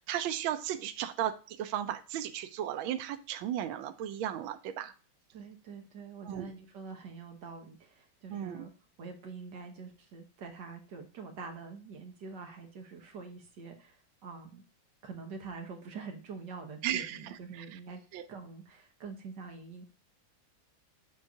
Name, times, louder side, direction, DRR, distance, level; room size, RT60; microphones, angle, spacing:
voice 1, 0.0-4.9 6.3-6.5 8.3-8.6 16.8-17.2 17.5-17.7 18.1-18.2, right 11 dB, 85° right, 9 dB, 1.4 m, -35 dB
voice 2, 5.3-8.7 9.0-14.6 15.0-18.0 18.3-19.8, right 4 dB, 65° right, 3 dB, 1.6 m, -45 dB
7.8 x 2.7 x 4.6 m, 0.36 s
omnidirectional pair, 2.1 m